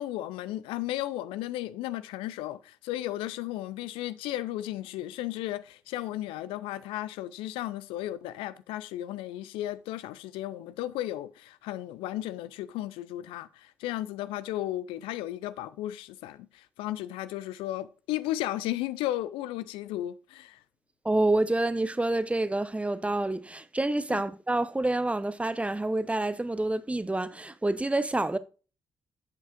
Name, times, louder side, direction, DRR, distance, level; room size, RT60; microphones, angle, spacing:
voice 1, 0.0-20.6 24.1-24.2, left 14 dB, 65° left, 0.5 m, -34 dB
voice 2, 21.0-28.4, right 2 dB, 15° right, 0.7 m, -28 dB
9.1 x 7.9 x 2.4 m
figure-of-eight pair, 40°, 10 cm